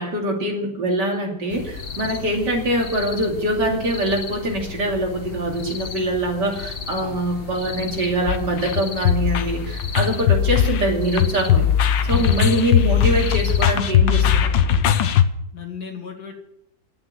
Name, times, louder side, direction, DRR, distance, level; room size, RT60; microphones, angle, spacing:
voice 1, 0.0-11.7 12.0-14.7, right 1 dB, 65° right, 0 dB, 3.4 m, -24 dB
sound 1, 1.5-13.8, left 5 dB, 40° left, 1.0 m, -34 dB
sound 2, 8.3-15.2, left 9 dB, 85° left, 1.5 m, -19 dB
voice 2, 12.1-12.4 15.5-16.3, left 6 dB, 55° left, 2 dB, 2.9 m, -35 dB
11.0 x 8.7 x 8.9 m, 0.78 s
omnidirectional pair, 2.0 m